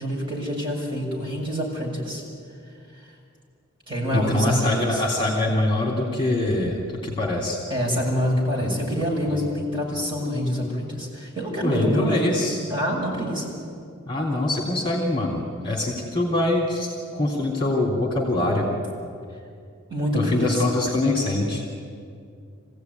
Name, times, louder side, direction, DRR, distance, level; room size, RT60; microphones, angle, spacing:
voice 1, 0.0-2.2 3.0-3.1 3.9-5.0 7.7-12.4 12.7-13.5 19.9-20.6, equal, 25° right, -4 dB, 6.6 m, -26 dB
voice 2, 4.1-6.8 7.0-7.6 8.6-8.8 9.3-9.4 11.6-12.6 14.1-18.7 20.1-21.6, left 2 dB, 25° left, -1 dB, 3.1 m, -24 dB
25.0 x 16.5 x 9.6 m, 2.3 s
head